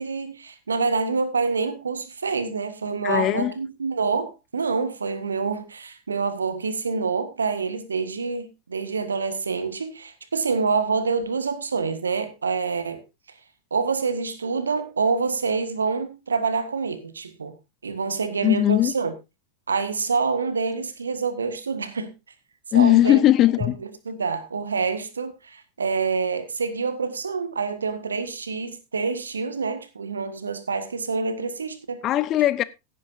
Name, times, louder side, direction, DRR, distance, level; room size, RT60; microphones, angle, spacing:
voice 1, 0.0-13.0 13.7-17.5 17.8-19.1 19.7-22.1 22.7-23.2 23.6-32.0, right 4 dB, 75° right, 1.6 m, -27 dB
voice 2, 3.0-3.5 18.4-18.9 22.7-23.8 32.0-32.6, left 13 dB, 35° left, 0.7 m, -19 dB
16.5 x 9.9 x 2.6 m
figure-of-eight pair, 90°, 0 cm